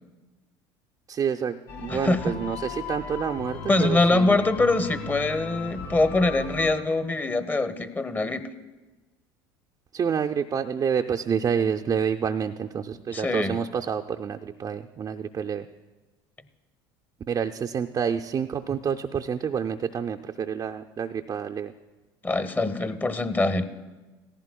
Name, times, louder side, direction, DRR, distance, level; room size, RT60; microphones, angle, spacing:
voice 1, 1.1-4.4 9.9-15.7 17.3-21.7, right 7 dB, 30° right, 4 dB, 0.4 m, -28 dB
sound 1, 1.7-6.7, left 5 dB, 65° left, 3.1 m, -37 dB
voice 2, 1.9-2.3 3.7-8.5 13.1-13.6 22.2-23.6, left 2 dB, 15° left, 12 dB, 0.8 m, -23 dB
17.5 x 15.0 x 2.2 m, 1.2 s
hypercardioid pair, 75°, 12 cm